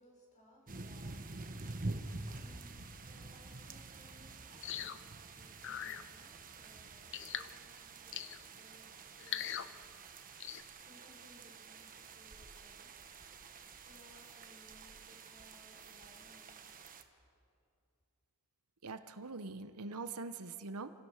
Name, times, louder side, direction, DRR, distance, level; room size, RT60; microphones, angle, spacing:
voice 1, 0.0-2.1 2.4-8.3 8.6-9.9 10.7-12.9 13.7-16.8, equal, 35° left, -2 dB, 6.4 m, -64 dB
sound 1, 0.7-17.0, right 3 dB, 40° right, 1.2 m, -48 dB
sound 2, 4.6-5.0 5.6-6.0 7.1-7.5 8.1-8.4 9.2-9.7 10.4-10.6, left 10 dB, 60° left, 0.7 m, -41 dB
voice 2, 18.8-20.9, right 3 dB, 85° right, 10 dB, 1.0 m, -43 dB
28.0 x 16.5 x 6.6 m, 2.5 s
head